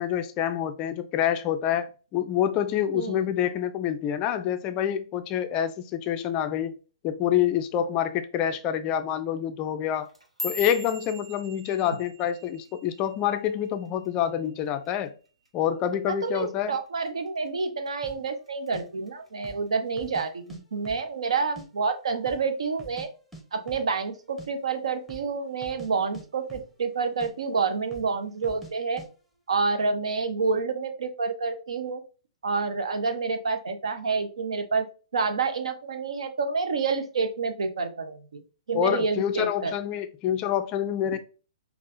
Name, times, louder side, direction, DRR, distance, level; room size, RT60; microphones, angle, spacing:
voice 1, 0.0-6.7 7.0-10.1 10.4-15.1 15.5-16.8 38.7-41.2, left 10 dB, 25° left, 0.4 m, -27 dB
voice 2, 2.9-3.2 16.1-23.1 23.5-29.0 29.5-32.0 32.4-34.9 35.1-38.4 38.7-39.7, right 4 dB, 65° right, 0.7 m, -28 dB
sound 1, 10.0-14.4 14.7-15.1 15.5-15.9 16.3-16.5 17.1-17.5 17.9-18.7 19.1-19.5 20.3-20.4, left 1 dB, 85° right, 1.0 m, -40 dB
sound 2, 18.0-18.2 18.7-18.8 19.3-19.7 20.0-20.6 20.8-21.7 21.9-22.0 22.3-23.1 23.3-23.4 23.7-23.9 24.2-24.5 25.0-25.3 25.6-25.9 26.1-26.9 27.2-27.3 27.9-28.1 28.4-28.7 29.0-29.1, equal, ahead, 0.8 m, -45 dB
5.3 x 2.4 x 2.5 m
figure-of-eight pair, 120°, 3 cm